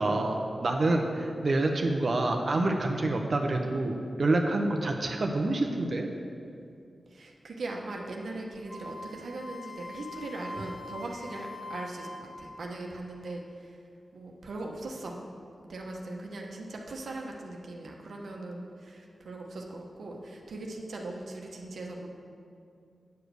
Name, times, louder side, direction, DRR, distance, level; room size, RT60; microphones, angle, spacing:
voice 1, 0.0-6.1, right 2 dB, 55° right, 2 dB, 0.8 m, -27 dB
voice 2, 7.1-13.8 14.1-15.2 15.7-22.1, right 2 dB, 80° right, 0 dB, 1.1 m, -40 dB
Wind instrument woodwind instrument, 8.7-12.8, left 2 dB, 5° left, 1.0 m, -43 dB
9.4 x 5.1 x 6.3 m, 2.5 s
wide cardioid pair, 90°, 0 cm